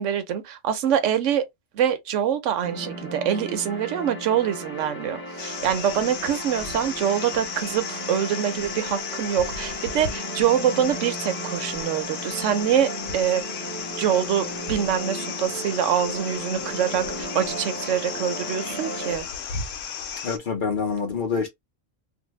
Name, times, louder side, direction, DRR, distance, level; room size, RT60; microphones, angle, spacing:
voice 1, 0.0-1.4 1.7-13.4 14.0-19.2, right 9 dB, 75° right, 0.9 m, -25 dB
sound 1, 2.6-19.2, right 1 dB, 10° left, 0.7 m, -35 dB
sound 2, 5.4-20.4, left 7 dB, 80° left, 1.0 m, -35 dB
voice 2, 20.2-21.5, left 5 dB, 50° left, 0.7 m, -26 dB
2.6 x 2.2 x 3.0 m
omnidirectional pair, 1.3 m